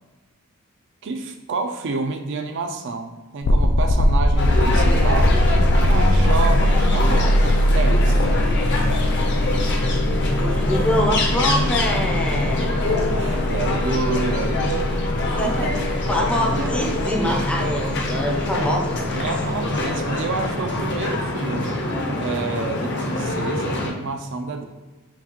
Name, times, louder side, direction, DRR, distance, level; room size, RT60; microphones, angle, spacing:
voice 1, 1.0-5.4 5.8-8.3 13.1-15.7 16.5-16.8 19.1-21.8 22.2-24.7, right 3 dB, 60° right, 5 dB, 0.4 m, -29 dB
sound 1, 3.4-20.3, left 1 dB, 85° left, 0.4 m, -21 dB
sound 2, 4.4-23.9, left 1 dB, 55° left, 0.7 m, -25 dB
voice 2, 10.3-12.9 15.3-15.8 16.1-19.2, equal, 5° left, 0 dB, 0.5 m, -25 dB
5.8 x 2.3 x 2.9 m, 1.2 s
head